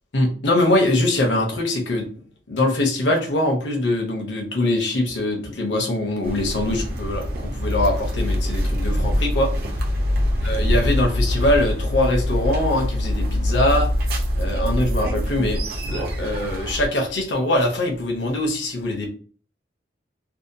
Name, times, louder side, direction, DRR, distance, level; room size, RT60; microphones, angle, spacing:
voice 1, 0.1-2.1 2.5-9.5 10.4-13.9 14.4-15.6 15.9-19.1, left 1 dB, 75° left, 1 dB, 0.7 m, -22 dB
sound 1, 6.2-16.9, left 1 dB, 50° right, 0.6 m, -24 dB
sound 2, 7.6-9.3 9.5-12.7, left 1 dB, 90° right, 0.9 m, -30 dB
2.7 x 2.1 x 2.5 m, 0.42 s
head